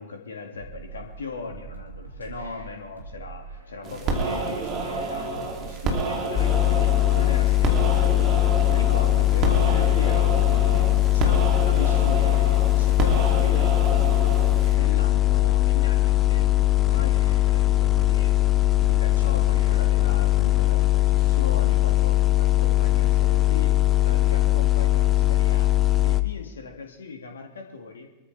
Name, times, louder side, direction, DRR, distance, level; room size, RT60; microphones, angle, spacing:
voice 1, 0.0-8.1 8.7-14.1 14.7-16.6 16.9-18.3 18.8-25.8 26.0-28.1, left 4 dB, 70° left, 3 dB, 2.0 m, -38 dB
sound 1, 0.5-20.1, right 4 dB, 85° right, 2.3 m, -42 dB
sound 2, 3.8-14.7, right 3 dB, 35° right, 2.8 m, -29 dB
sound 3, 6.4-26.2, left 15 dB, 25° left, 0.7 m, -20 dB
25.0 x 13.5 x 3.4 m, 1.1 s
figure-of-eight pair, 90°, 0 cm